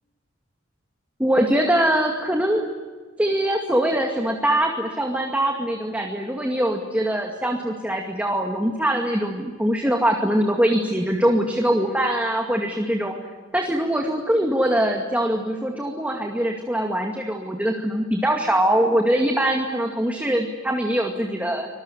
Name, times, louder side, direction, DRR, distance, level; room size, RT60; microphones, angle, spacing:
voice 1, 1.2-2.7 3.2-13.2 13.5-21.7, right 1 dB, 5° right, 1 dB, 2.2 m, -22 dB
25.5 x 21.0 x 10.0 m, 1.4 s
head